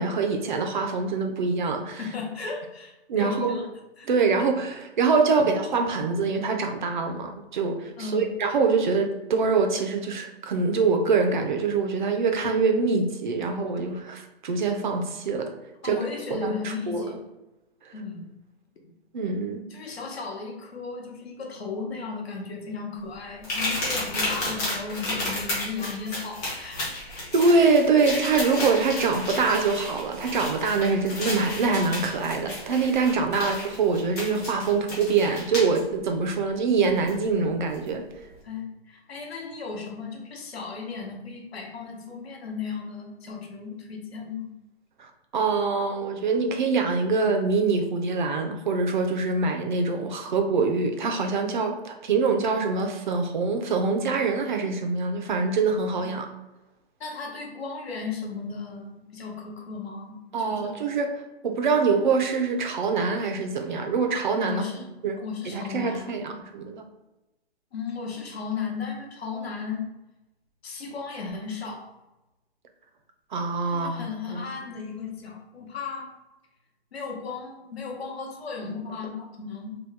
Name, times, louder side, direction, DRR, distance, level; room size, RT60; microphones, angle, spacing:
voice 1, 0.0-2.0 3.1-3.6 4.1-15.6 15.8-17.0 19.1-19.6 27.3-38.0 45.0-56.3 60.3-64.7 65.0-66.8 73.3-74.5, right 4 dB, 50° right, 0.5 m, -24 dB
voice 2, 2.0-3.7 4.0-4.1 8.0-8.4 15.8-17.2 17.9-18.3 19.7-26.9 33.3-33.5 38.4-44.5 56.0-56.1 57.0-60.7 64.4-64.9 65.2-66.2 67.7-69.9 70.6-71.9 73.7-76.1 76.9-79.8, left 5 dB, 70° left, 0.9 m, -35 dB
sound 1, 23.4-35.8 37.1-37.2 37.7-37.9, left 1 dB, 15° left, 0.6 m, -32 dB
2.9 x 2.2 x 3.4 m
hypercardioid pair, 155°, 32 cm